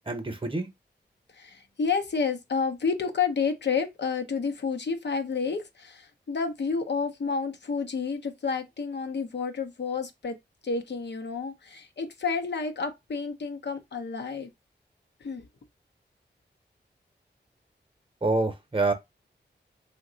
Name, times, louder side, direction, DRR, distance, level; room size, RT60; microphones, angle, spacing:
voice 1, 0.1-0.7 18.2-18.9, right 3 dB, 30° right, 0.8 m, -26 dB
voice 2, 1.3-10.4 10.6-14.5 15.2-15.5, left 5 dB, 70° left, 0.7 m, -30 dB
2.8 x 2.2 x 3.8 m
cardioid pair, 50°, 19 cm